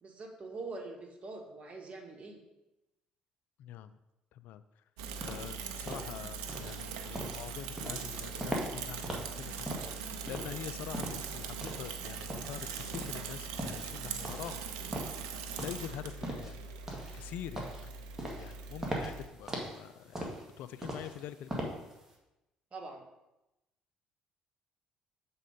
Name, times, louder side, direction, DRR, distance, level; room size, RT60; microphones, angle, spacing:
voice 1, 0.0-2.4 22.7-23.0, right 3 dB, 40° right, 1 dB, 1.7 m, -44 dB
voice 2, 3.6-4.0 4.3-4.6 5.2-15.0 15.6-16.6 17.1-17.7 18.4-21.7, left 11 dB, 70° left, 13 dB, 0.3 m, -45 dB
Bicycle / Mechanisms, 5.0-19.3, right 6 dB, 80° right, 0.6 m, -41 dB
sound 1, 5.2-22.1, right 1 dB, 15° right, 1.9 m, -41 dB
7.2 x 4.2 x 5.2 m, 0.94 s
hypercardioid pair, 55°, 3 cm